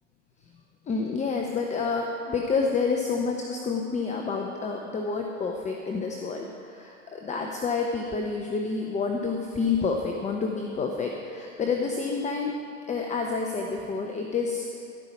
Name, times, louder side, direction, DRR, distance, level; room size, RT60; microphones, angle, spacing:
voice 1, 0.8-12.5 12.9-14.7, left 4 dB, 20° left, 2 dB, 0.8 m, -29 dB
14.5 x 5.7 x 7.1 m, 2.4 s
hypercardioid pair, 100°, 39 cm